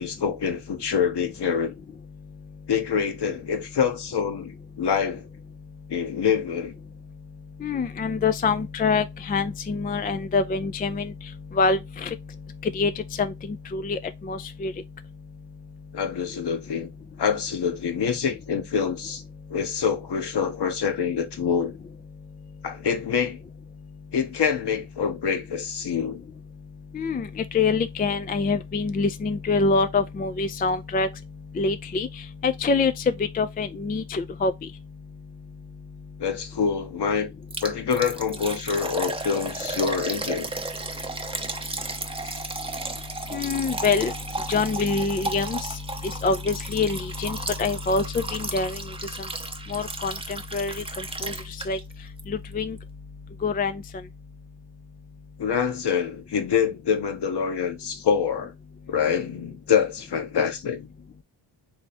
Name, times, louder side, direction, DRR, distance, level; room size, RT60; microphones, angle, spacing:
voice 1, 0.0-1.7 2.7-4.5 4.8-5.2 5.9-6.7 15.9-16.9 17.2-19.2 19.5-21.7 22.6-23.4 24.1-26.2 36.2-37.3 37.6-40.5 42.2-42.3 55.4-58.5 58.9-60.9, left 7 dB, 55° left, 1.2 m, -26 dB
voice 2, 7.6-11.1 11.6-12.2 12.6-12.9 13.2-13.3 13.7-14.7 26.9-31.1 31.6-32.1 32.4-32.9 33.3-34.5 43.3-44.1 44.5-45.6 46.2-48.8 49.7-50.1 50.5-50.8 51.2-51.3 51.7-51.8 52.3-52.8 53.4-53.7, left 4 dB, 20° left, 0.4 m, -25 dB
Liquid, 37.5-51.9 52.2-52.3 52.8-52.9, right 2 dB, 10° right, 0.7 m, -34 dB
3.5 x 3.3 x 4.1 m
supercardioid pair, 55°, 49 cm